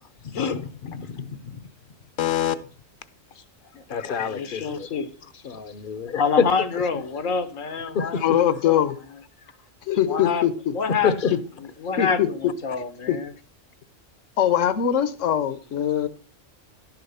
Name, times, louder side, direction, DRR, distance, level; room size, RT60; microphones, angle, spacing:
voice 1, 0.2-1.6 3.9-4.9 5.4-6.2 7.9-8.2 11.0-11.3, left 6 dB, 50° left, 0.8 m, -29 dB
voice 2, 2.2-2.5 8.2-9.0 9.9-10.7 11.3-11.4 11.9-12.3 13.1-13.2 14.4-16.1, left 10 dB, 75° left, 1.2 m, -22 dB
voice 3, 4.3-5.1 6.1-8.8 10.1-10.5 10.7-11.4 11.8-13.3, left 5 dB, 90° left, 1.5 m, -27 dB
11.5 x 6.8 x 5.5 m
omnidirectional pair, 1.3 m